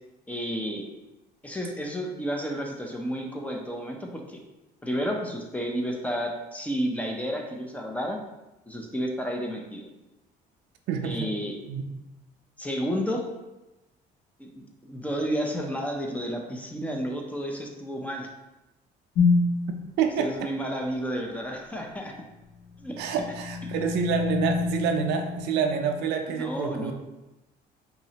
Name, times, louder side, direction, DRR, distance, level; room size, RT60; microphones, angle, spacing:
voice 1, 0.3-0.9 1.4-4.4 4.8-8.2 8.7-9.9 11.0-11.5 12.6-13.2 14.4-18.3 20.2-22.1 22.8-23.0 26.3-26.9, equal, 10° left, 1 dB, 0.5 m, -31 dB
voice 2, 10.9-11.3 11.7-11.9 20.0-20.5 23.0-26.9, right 7 dB, 85° right, 5 dB, 0.5 m, -28 dB
sound 1, 19.2-19.7 22.6-26.1, left 4 dB, 75° left, 0.6 m, -27 dB
5.3 x 2.1 x 2.8 m, 1.0 s
cardioid pair, 110°, 17 cm